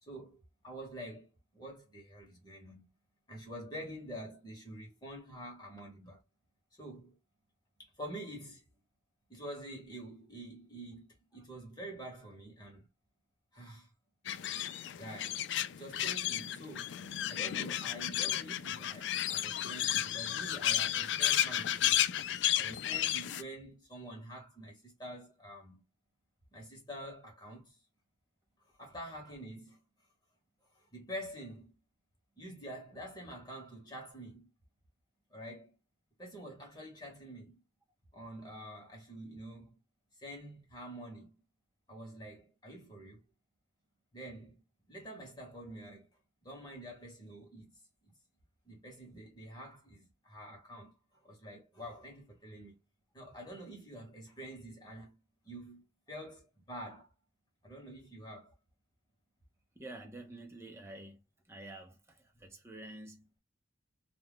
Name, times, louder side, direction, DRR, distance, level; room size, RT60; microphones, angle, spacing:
voice 1, 0.0-2.9 3.3-6.2 6.8-7.2 7.8-8.6 9.3-12.9 13.5-13.9 14.9-15.4 15.7-17.0 17.3-22.1 22.5-25.8 26.5-27.8 28.8-29.8 30.7-31.7 32.4-34.5 35.3-35.7 36.2-37.6 38.1-39.7 40.2-41.3 41.9-43.2 44.1-44.6 44.9-46.1 46.4-47.7 48.7-51.0 51.2-52.8 53.1-55.2 55.4-57.1 57.6-58.5, equal, 25° left, 1.1 m, -47 dB
sound 1, 14.3-23.4, left 11 dB, 65° left, 0.3 m, -33 dB
voice 2, 59.8-61.2 61.5-63.4, right 2 dB, 15° right, 0.7 m, -49 dB
2.3 x 2.2 x 3.5 m
head